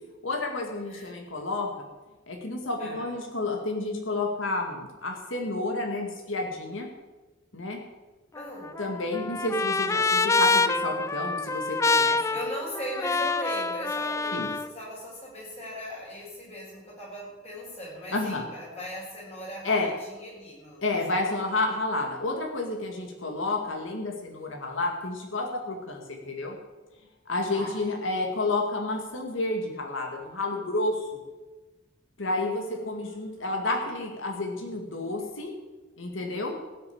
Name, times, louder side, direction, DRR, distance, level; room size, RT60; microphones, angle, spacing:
voice 1, 0.2-1.7 2.3-6.9 7.5-7.8 8.8-12.2 14.3-14.5 18.1-18.4 19.6-19.9 20.8-26.6 27.3-31.1 32.2-35.5 36.0-36.6, left 2 dB, 75° left, 1 dB, 2.1 m, -30 dB
voice 2, 2.8-3.1 8.3-8.7 12.1-21.5 27.5-27.8 32.2-33.7 33.9-34.0, equal, 35° left, -4 dB, 6.3 m, -39 dB
Trumpet, 8.4-14.7, left 3 dB, 15° left, 0.3 m, -26 dB
16.0 x 6.9 x 8.6 m, 1.2 s
head